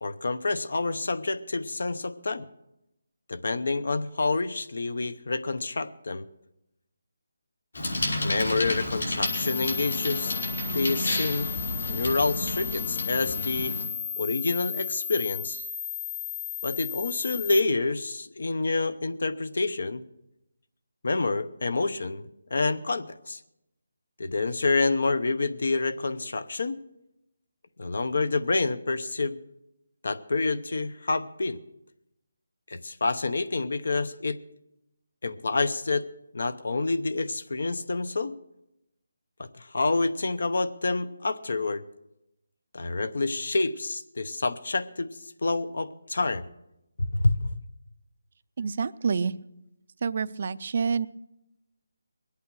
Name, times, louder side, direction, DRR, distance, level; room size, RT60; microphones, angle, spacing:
voice 1, 0.0-2.5 3.3-6.3 8.2-10.3 10.7-11.5 11.9-13.7 14.2-15.6 16.6-20.0 21.0-23.4 24.2-26.8 27.8-29.4 30.0-31.6 32.7-34.4 35.2-36.0 36.3-38.3 39.4-41.8 42.7-45.1 45.4-46.5 47.0-47.6, left 3 dB, 65° left, 13 dB, 0.8 m, -28 dB
Bicycle, 7.7-13.8, left 1 dB, 80° left, 4.8 m, -31 dB
sound 1, 9.3-17.6, left 8 dB, 15° left, 0.8 m, -34 dB
voice 2, 48.6-49.3 50.0-51.1, right 5 dB, 40° right, 14 dB, 0.5 m, -27 dB
21.5 x 8.7 x 6.2 m, 0.88 s
hypercardioid pair, 170°, 0 cm